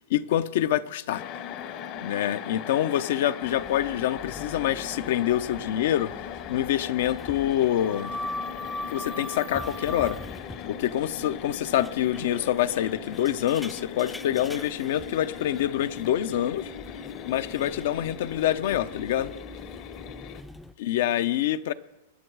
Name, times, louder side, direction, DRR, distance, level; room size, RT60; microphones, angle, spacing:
voice 1, 0.1-1.2 2.0-6.1 6.5-8.1 8.9-10.2 10.7-16.7 17.3-19.3 20.8-21.7, left 12 dB, 65° left, 0.7 m, -26 dB
sound 1, 1.1-20.4, left 8 dB, 45° left, 0.9 m, -39 dB
sound 2, 3.4-20.7, left 1 dB, 5° left, 0.5 m, -42 dB
22.5 x 8.9 x 4.8 m
hypercardioid pair, 130°, 0 cm